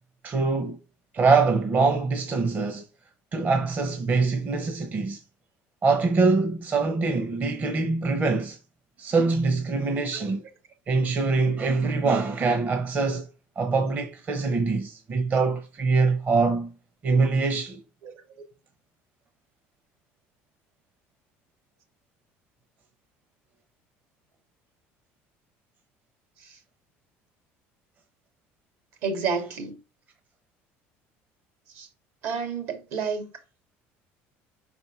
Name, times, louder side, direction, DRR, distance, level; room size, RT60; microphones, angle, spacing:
voice 1, 0.2-0.8 1.1-2.8 3.3-5.2 5.8-8.6 9.0-10.4 10.9-13.3 13.6-16.7 17.0-17.8, right 4 dB, 35° right, 0.8 m, -24 dB
voice 2, 29.0-29.8 31.8-31.9 32.2-33.3, right 5 dB, 70° right, 2.0 m, -29 dB
5.4 x 4.2 x 4.3 m
cardioid pair, 125°, 5 cm